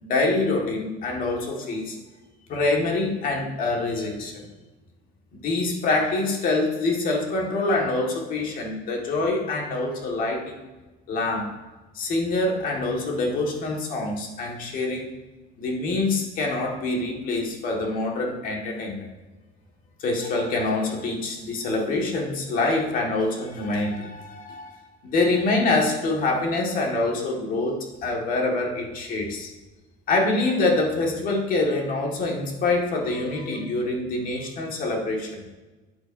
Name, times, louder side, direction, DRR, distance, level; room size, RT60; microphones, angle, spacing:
voice 1, 0.0-2.0 2.5-4.5 5.3-10.7 11.1-11.5 11.9-15.1 15.6-19.1 20.0-24.8 25.0-29.5 30.1-35.5, left 2 dB, 45° left, 0 dB, 1.8 m, -25 dB
11.5 x 8.1 x 2.7 m, 1.2 s
cardioid pair, 165°, 20 cm